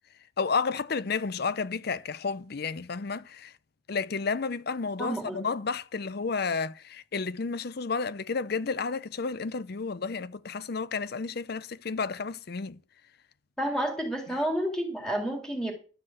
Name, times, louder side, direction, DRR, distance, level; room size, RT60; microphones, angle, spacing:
voice 1, 0.4-3.5 3.9-12.8, left 5 dB, 50° left, 0.6 m, -31 dB
voice 2, 5.0-5.4 13.6-15.7, right 1 dB, 5° left, 3.2 m, -30 dB
12.0 x 5.9 x 7.7 m
head